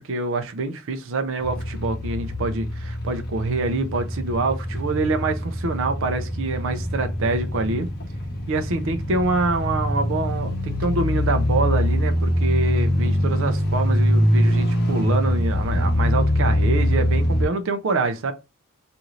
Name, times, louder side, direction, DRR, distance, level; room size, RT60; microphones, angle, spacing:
voice 1, 0.0-7.9 8.5-18.3, right 3 dB, 65° right, 0.5 m, -25 dB
sound 1, 1.4-17.4, equal, 50° left, 0.8 m, -23 dB
2.6 x 2.5 x 3.0 m
head